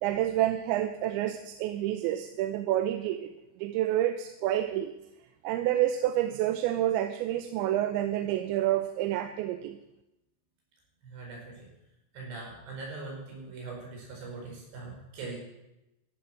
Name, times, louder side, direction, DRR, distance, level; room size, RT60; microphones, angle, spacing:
voice 1, 0.0-3.3 3.6-4.9 5.4-9.8, right 12 dB, 85° right, 8 dB, 3.0 m, -28 dB
voice 2, 11.0-11.7 12.1-15.4, right 3 dB, 65° right, -1 dB, 7.1 m, -41 dB
15.0 x 13.0 x 6.0 m, 0.91 s
omnidirectional pair, 5.2 m